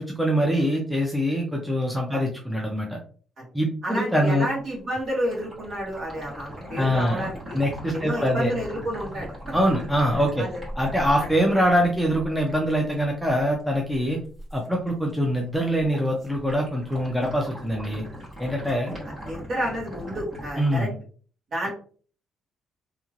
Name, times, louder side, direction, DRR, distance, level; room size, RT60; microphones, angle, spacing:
voice 1, 0.0-3.0 3.5-4.5 6.8-7.3 7.5-8.5 9.5-10.5 10.8-14.2 14.5-18.1 18.4-18.9 20.6-20.9, equal, ahead, -1 dB, 0.5 m, -24 dB
voice 2, 3.8-7.6 7.9-9.3 10.4-10.6 11.1-11.3 19.2-20.9 21.5-21.7, equal, 45° right, -3 dB, 1.4 m, -30 dB
sound 1, 4.6-14.7 15.0-15.5 15.7-20.8, equal, 30° right, 1.4 m, -40 dB
3.0 x 2.8 x 2.4 m, 0.42 s
cardioid pair, 165°, 0 cm